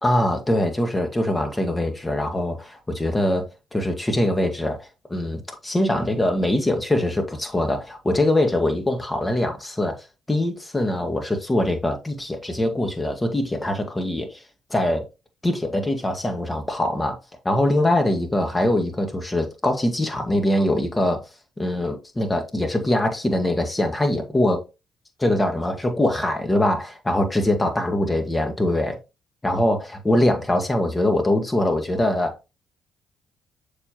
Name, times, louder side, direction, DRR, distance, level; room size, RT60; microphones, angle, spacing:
voice 1, 0.0-10.0 10.3-14.4 14.7-15.1 15.4-17.2 17.4-21.2 21.6-24.6 25.2-29.0 29.4-32.5, left 1 dB, 20° left, 1.7 m, -23 dB
6.8 x 5.2 x 2.9 m
hypercardioid pair, 50°, 0 cm